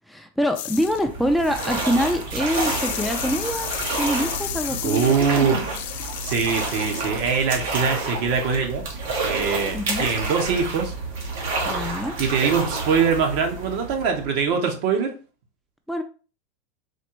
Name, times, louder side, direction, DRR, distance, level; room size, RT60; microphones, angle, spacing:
voice 1, 0.1-5.6 9.7-10.1 11.6-12.1 15.9-16.0, equal, ahead, 5 dB, 0.4 m, -25 dB
sound 1, 0.6-1.0 1.4-7.2, left 12 dB, 70° left, 0.3 m, -33 dB
sound 2, 0.7-14.5, right 3 dB, 80° right, 1.2 m, -29 dB
voice 2, 4.6-5.6 6.2-8.8 9.2-10.9 11.8-15.1, right 6 dB, 65° right, 3 dB, 1.1 m, -23 dB
4.2 x 2.5 x 3.1 m, 0.36 s
supercardioid pair, 125°, 0 cm